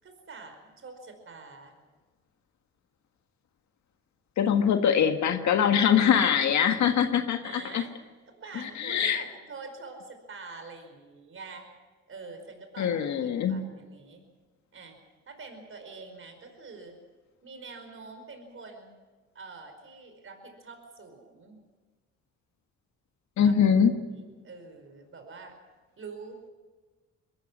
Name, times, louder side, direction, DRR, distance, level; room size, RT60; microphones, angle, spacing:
voice 1, 0.0-1.7 7.4-8.0 8.3-11.7 12.1-12.9 13.2-14.2 14.7-15.0 15.3-17.0 17.4-18.9 19.3-21.6 23.4-23.5 23.9-25.6 26.0-26.5, right 4 dB, 45° right, 6 dB, 5.0 m, -46 dB
voice 2, 4.4-7.8 8.8-9.2 12.8-13.6 23.4-23.9, left 8 dB, 70° left, 6 dB, 1.7 m, -23 dB
22.0 x 14.5 x 9.8 m, 1.3 s
cardioid pair, 90°, 30 cm